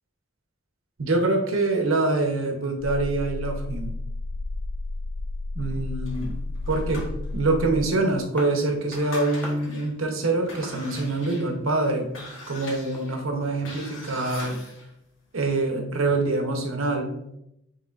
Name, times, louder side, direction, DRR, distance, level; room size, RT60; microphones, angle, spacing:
voice 1, 1.0-3.9 5.6-6.4 6.7-7.1 7.3-12.1 12.5-14.6 15.3-17.1, right 2 dB, 75° right, 3 dB, 0.8 m, -25 dB
sound 1, 2.8-7.9, left 2 dB, 85° left, 0.3 m, -32 dB
sound 2, 6.0-7.6 8.1-8.2 8.7-9.9 10.3-14.9, left 2 dB, 65° left, 1.3 m, -41 dB
sound 3, 8.3-9.0 9.4-9.9 10.6-11.3 11.9-12.6 12.8-14.9, left 1 dB, 10° left, 0.9 m, -44 dB
5.5 x 3.6 x 2.5 m, 0.82 s
head